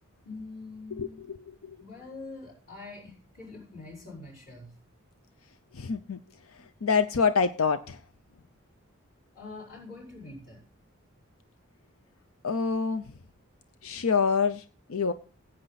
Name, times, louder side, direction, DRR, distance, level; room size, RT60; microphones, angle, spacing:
voice 1, 0.2-1.3 1.8-4.7 9.3-10.6, left 3 dB, 45° left, -9 dB, 5.7 m, -44 dB
voice 2, 5.7-6.2 6.8-8.0 12.4-13.0 13.8-14.6 14.9-15.1, left 5 dB, 85° left, 11 dB, 0.6 m, -25 dB
16.5 x 8.9 x 4.1 m, 0.38 s
head